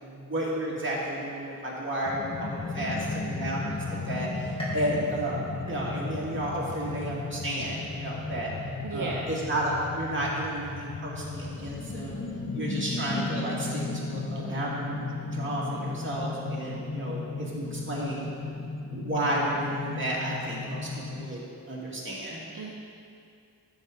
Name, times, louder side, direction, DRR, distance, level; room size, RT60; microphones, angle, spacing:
voice 1, 0.0-8.5 8.9-12.2 12.5-18.2 18.9-21.4 21.7-22.4, right 1 dB, 35° right, -6 dB, 2.3 m, -32 dB
sound 1, 2.0-21.3, left 3 dB, 40° left, 0.6 m, -35 dB
voice 2, 2.8-3.1 8.8-9.3 14.3-14.7 22.5-22.7, right 4 dB, 65° right, -1 dB, 0.8 m, -37 dB
sound 2, 4.6-6.3 6.8-7.3 7.8-7.9 8.9-9.0, right 1 dB, 15° left, 2.3 m, -42 dB
13.0 x 7.2 x 3.8 m, 2.5 s
wide cardioid pair, 90°, 34 cm